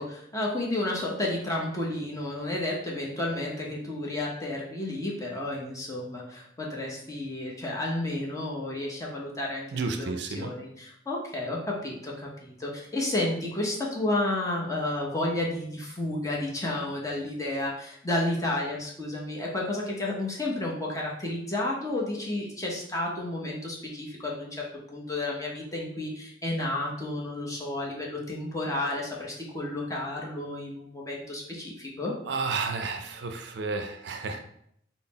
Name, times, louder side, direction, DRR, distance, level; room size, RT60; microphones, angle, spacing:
voice 1, 0.0-32.1, left 1 dB, 20° left, -3 dB, 0.7 m, -31 dB
voice 2, 9.7-10.5 32.3-34.4, right 4 dB, 65° right, 6 dB, 0.4 m, -31 dB
3.9 x 2.0 x 3.9 m, 0.71 s
head